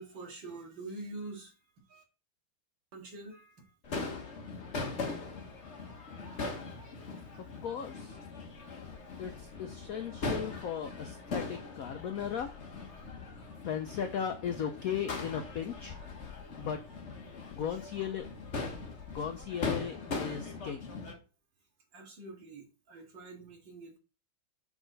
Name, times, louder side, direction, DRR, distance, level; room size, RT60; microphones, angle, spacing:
voice 1, 0.0-2.0 2.9-3.8 17.7-17.8 21.9-24.0, right 2 dB, 65° right, 0 dB, 2.7 m, -46 dB
Crowd / Fireworks, 3.8-21.1, left 3 dB, 40° left, 1.4 m, -40 dB
voice 2, 7.4-8.2 9.2-12.6 13.7-16.0 16.6-16.8 17.5-18.3 19.1-20.9, left 8 dB, 75° left, 7 dB, 0.8 m, -37 dB
6.1 x 6.0 x 3.9 m, 0.33 s
omnidirectional pair, 2.2 m